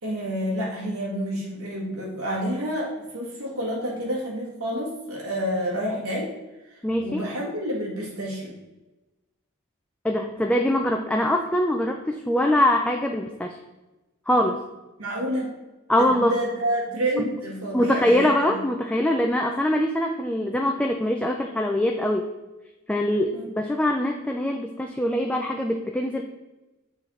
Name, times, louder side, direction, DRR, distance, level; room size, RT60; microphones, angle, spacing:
voice 1, 0.0-6.3 6.7-8.6 15.0-15.5 15.9-18.6 23.3-23.5, equal, 90° right, -4 dB, 1.8 m, -29 dB
voice 2, 6.8-7.2 10.0-13.5 14.3-14.6 15.9-16.3 17.2-17.3 17.7-22.2 22.9-26.2, left 1 dB, 5° left, 2 dB, 0.4 m, -23 dB
7.0 x 3.9 x 4.2 m, 1.1 s
head